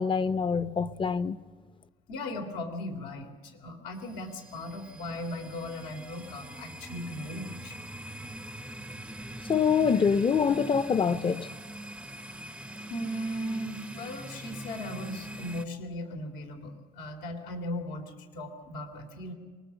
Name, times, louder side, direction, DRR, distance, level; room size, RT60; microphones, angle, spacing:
voice 1, 0.0-1.4 9.5-11.5, left 6 dB, 30° left, 0.7 m, -25 dB
voice 2, 2.1-7.8 10.0-10.1 12.9-19.3, left 1 dB, 85° left, 3.0 m, -37 dB
sound 1, 3.9-15.6, right 1 dB, 5° right, 0.6 m, -43 dB
23.5 x 20.0 x 7.2 m
cardioid pair, 110°, 17 cm